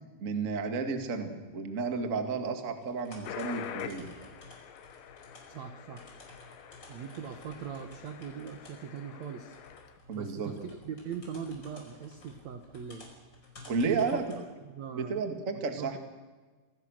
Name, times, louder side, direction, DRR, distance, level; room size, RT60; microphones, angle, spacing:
voice 1, 0.2-4.1 10.1-10.5 13.7-14.2 14.9-16.0, right 4 dB, 40° right, 6 dB, 1.2 m, -32 dB
sound 1, 1.9-14.4, left 1 dB, 25° left, 5.4 m, -54 dB
sound 2, 3.2-10.0, left 9 dB, 85° left, 3.6 m, -46 dB
voice 2, 5.5-6.1 6.9-9.5 10.1-13.1 13.8-14.2 14.6-15.2 15.8-15.9, right 7 dB, 70° right, 7 dB, 1.6 m, -40 dB
26.5 x 20.0 x 6.5 m, 1.3 s
omnidirectional pair, 5.1 m